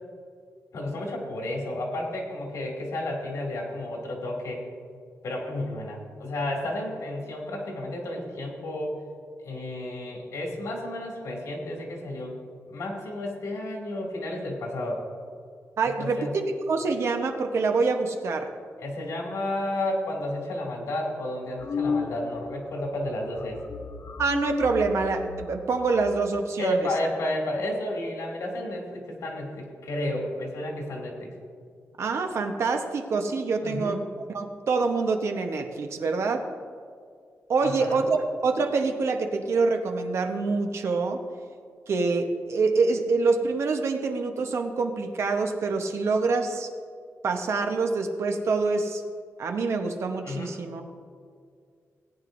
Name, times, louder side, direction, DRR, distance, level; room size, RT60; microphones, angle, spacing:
voice 1, 0.7-4.6 5.2-9.0 9.4-12.4 12.7-15.1 15.8-16.3 18.8-23.6 26.6-31.3 33.6-34.0 37.6-38.0 50.2-50.6, left 1 dB, 85° left, -1 dB, 2.4 m, -32 dB
voice 2, 15.8-18.5 24.2-26.8 32.0-34.0 34.3-36.5 37.5-41.3 41.9-46.7 47.2-49.0 49.4-50.8, right 4 dB, 60° right, 5 dB, 0.9 m, -26 dB
sound 1, 21.6-22.6 22.8-23.1 23.4-26.6, left 5 dB, 45° left, 0.4 m, -33 dB
18.5 x 9.5 x 2.6 m, 2.2 s
wide cardioid pair, 175°, 5 cm